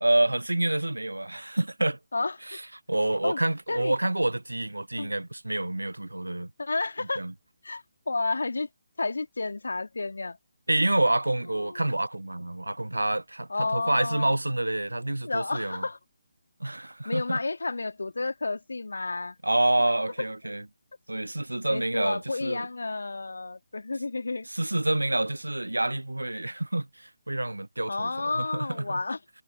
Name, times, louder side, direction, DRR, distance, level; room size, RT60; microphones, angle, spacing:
voice 1, 0.0-2.0 2.5-2.6 2.9-6.5 7.2-7.3 10.7-15.9 16.6-17.4 19.4-20.6 21.1-22.7 24.5-29.0, right 1 dB, 75° right, 0.5 m, -27 dB
voice 2, 6.6-7.2 7.6-8.7 9.0-10.4 11.5-11.8 13.5-14.4 15.2-16.0 17.0-19.4 21.7-24.5 27.9-29.2, left 3 dB, 65° left, 2.2 m, -31 dB
figure-of-eight pair, 145°, 0 cm